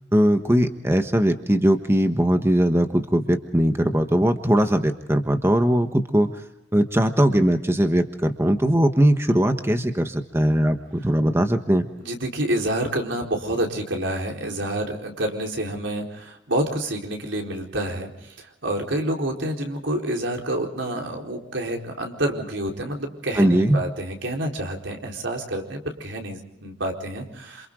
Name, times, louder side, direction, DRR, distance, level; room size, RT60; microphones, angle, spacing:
voice 1, 0.1-6.3 6.7-11.9 23.4-23.8, equal, 15° right, 7 dB, 1.3 m, -20 dB
voice 2, 12.0-27.7, right 1 dB, 85° right, 1 dB, 4.3 m, -28 dB
28.0 x 27.5 x 3.8 m, 0.81 s
head